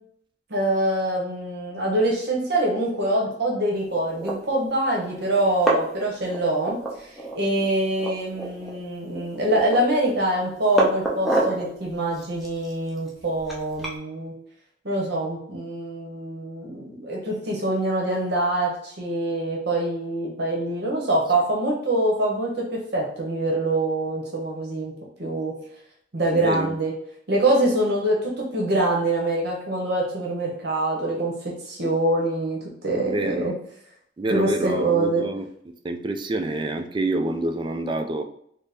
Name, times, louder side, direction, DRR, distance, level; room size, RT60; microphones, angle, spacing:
voice 1, 0.5-14.3 14.8-24.9 25.2-25.5 26.1-26.9 27.3-32.6 32.8-33.5 34.3-35.2, right 1 dB, 60° right, -1 dB, 0.9 m, -24 dB
sound 1, 4.0-4.3 5.0-5.1 5.3-6.0 6.3-7.4 7.6-7.7 8.0-8.7 9.1-9.9 10.4-11.6 12.1-14.0, right 2 dB, ahead, 0.7 m, -27 dB
voice 2, 26.3-26.7 33.0-33.5 34.2-35.4 35.8-38.2, right 2 dB, 25° right, 6 dB, 0.3 m, -27 dB
4.1 x 2.1 x 3.3 m, 0.69 s
head